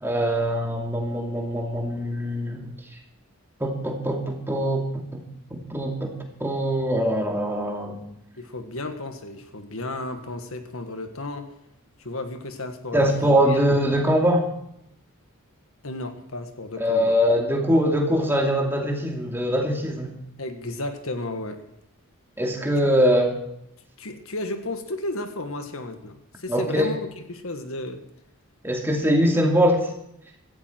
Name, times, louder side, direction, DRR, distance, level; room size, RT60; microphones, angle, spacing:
voice 1, 0.0-2.6 3.6-5.2 5.5-6.1 6.4-8.0 12.9-14.5 16.8-20.1 22.4-23.4 26.5-26.9 28.6-29.9, equal, 10° right, 1 dB, 2.5 m, -22 dB
voice 2, 8.4-11.5 12.0-13.6 15.8-17.2 20.4-21.6 22.8-22.9 24.0-27.0 27.3-28.0, left 2 dB, 70° left, 7 dB, 1.7 m, -33 dB
16.5 x 14.5 x 4.6 m, 0.76 s
head